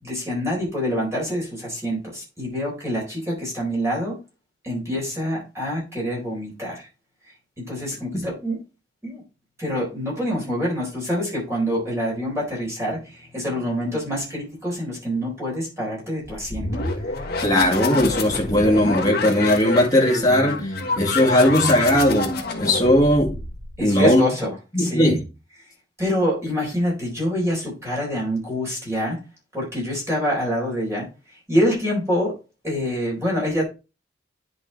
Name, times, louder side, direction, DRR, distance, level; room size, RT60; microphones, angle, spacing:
voice 1, 0.0-4.2 4.6-6.9 7.6-8.6 9.0-9.2 9.6-16.8 17.2-17.3 23.8-25.1 26.0-29.2 29.5-31.1 31.5-32.4 32.6-33.6, equal, 15° right, 4.1 m, -26 dB
sound 1, 16.2-23.9, left 3 dB, 55° left, 1.5 m, -27 dB
voice 2, 17.4-23.3 23.8-24.2 24.7-25.2, left 1 dB, 20° left, 2.1 m, -18 dB
10.0 x 4.9 x 3.3 m
head